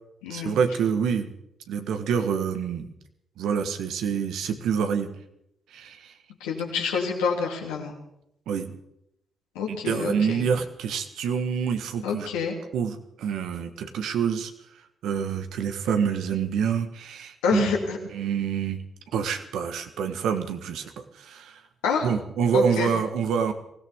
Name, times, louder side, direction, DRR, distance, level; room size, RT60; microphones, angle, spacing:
voice 1, 0.3-1.3 1.7-2.9 3.4-5.1 5.7-6.1 8.5-8.7 9.7-12.3 12.7-14.5 15.0-17.7 18.1-18.8 19.1-21.6 22.0-23.5, right 7 dB, 70° right, 7 dB, 1.3 m, -27 dB
voice 2, 6.4-7.9 9.5-10.5 12.0-12.6 17.4-18.0 21.8-22.1 22.5-22.9, left 6 dB, 80° left, 0 dB, 2.7 m, -27 dB
23.0 x 16.5 x 3.6 m, 0.81 s
hypercardioid pair, 40°, 0 cm